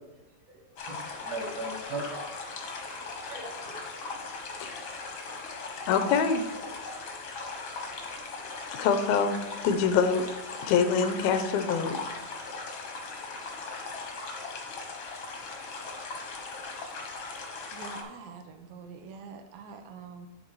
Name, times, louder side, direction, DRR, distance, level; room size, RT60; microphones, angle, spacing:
voice 1, 0.5-2.6 2.9-3.8, right 2 dB, 60° right, -2 dB, 1.7 m, -39 dB
sound 1, 0.8-18.0, left 3 dB, 65° left, 1.2 m, -39 dB
voice 2, 5.9-6.4 8.8-10.3 10.6-12.0, left 6 dB, 85° left, 8 dB, 2.5 m, -25 dB
voice 3, 17.7-20.3, right 5 dB, 80° right, 6 dB, 2.5 m, -44 dB
11.0 x 3.9 x 4.7 m, 0.98 s
omnidirectional pair, 4.2 m